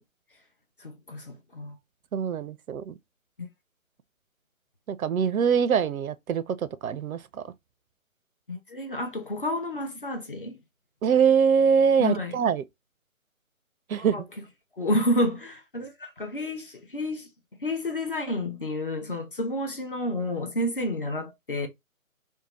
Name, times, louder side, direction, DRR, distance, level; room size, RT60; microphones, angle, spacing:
voice 1, 0.8-1.8 3.4-3.5 8.5-10.6 12.0-12.4 13.9-14.2 14.8-17.3 17.6-21.7, left 1 dB, 40° left, 0.5 m, -30 dB
voice 2, 2.1-2.9 4.9-7.2 11.0-12.6 13.9-14.2, right 7 dB, 80° right, 0.5 m, -23 dB
2.6 x 2.1 x 3.0 m
figure-of-eight pair, 160°, 41 cm